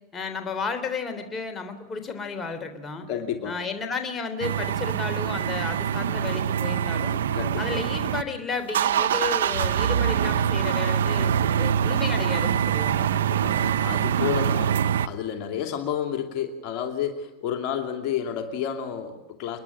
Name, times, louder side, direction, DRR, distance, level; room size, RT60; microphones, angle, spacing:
voice 1, 0.1-3.1 3.4-7.2 7.6-13.1 14.2-14.6, left 4 dB, 20° left, 7 dB, 3.4 m, -33 dB
voice 2, 3.1-3.6 7.3-7.8 13.1-19.6, left 9 dB, 55° left, 5 dB, 2.6 m, -31 dB
sound 1, 4.4-8.2 8.5-15.1, right 9 dB, 90° right, 0.6 m, -24 dB
29.5 x 10.5 x 9.8 m, 1.1 s
supercardioid pair, 115°, 0 cm